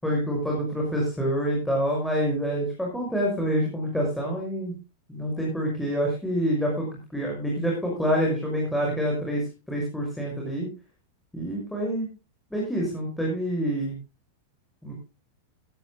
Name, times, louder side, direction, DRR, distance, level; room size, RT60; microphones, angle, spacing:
voice 1, 0.0-4.7 5.1-6.8 7.1-9.4 9.7-10.7 11.3-12.1 12.5-14.0 14.8-14.9, equal, 5° left, -2 dB, 6.1 m, -27 dB
17.0 x 14.5 x 2.2 m, 0.29 s
figure-of-eight pair, 90°, 0 cm